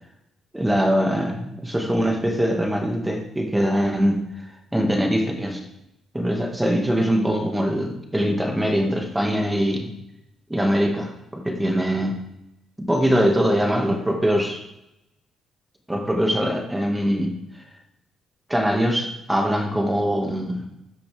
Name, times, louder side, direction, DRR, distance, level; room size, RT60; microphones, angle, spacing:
voice 1, 0.5-4.2 4.7-5.6 6.1-9.9 10.5-12.2 12.9-14.6 15.9-17.3 18.5-20.7, equal, 10° right, 2 dB, 1.9 m, -22 dB
13.5 x 6.0 x 3.5 m, 0.84 s
cardioid pair, 90°, 0 cm